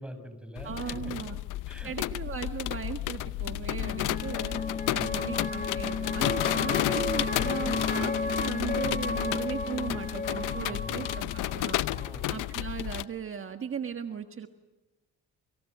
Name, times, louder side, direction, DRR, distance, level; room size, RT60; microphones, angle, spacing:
voice 1, 0.0-1.3 1.7-2.1 4.9-5.4 7.7-8.1 10.7-11.1 11.9-12.3, equal, 5° right, 8 dB, 7.0 m, -45 dB
sound 1, 0.6-13.0, left 15 dB, 90° left, 0.8 m, -32 dB
voice 2, 0.6-1.4 1.8-4.6 4.9-11.8 12.3-14.5, right 7 dB, 45° right, 6 dB, 1.6 m, -37 dB
sound 2, 2.5-12.7, left 3 dB, 30° left, 1.5 m, -34 dB
29.0 x 26.0 x 6.7 m, 1.1 s
cardioid pair, 90°, 30 cm